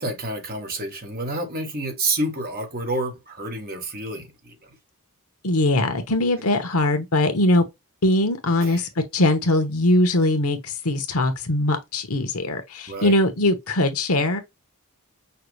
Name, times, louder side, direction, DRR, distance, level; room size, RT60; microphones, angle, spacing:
voice 1, 0.0-4.5 8.6-8.8 12.9-13.2, right 2 dB, 45° right, 1.4 m, -29 dB
voice 2, 5.4-7.7 8.0-14.4, left 1 dB, 80° left, 1.1 m, -21 dB
5.7 x 2.4 x 3.2 m
head